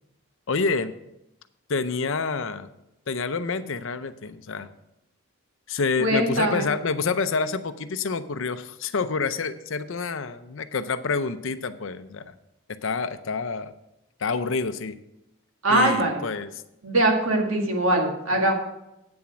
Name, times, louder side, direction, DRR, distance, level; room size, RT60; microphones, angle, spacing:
voice 1, 0.5-0.9 1.7-2.7 3.1-4.7 5.7-12.3 12.8-13.7 14.2-15.0 15.7-16.5, left 4 dB, 60° left, 12 dB, 0.6 m, -28 dB
voice 2, 6.0-6.7 15.6-16.2 16.8-18.5, right 1 dB, 75° right, 1 dB, 2.1 m, -22 dB
8.7 x 7.1 x 6.0 m, 0.87 s
head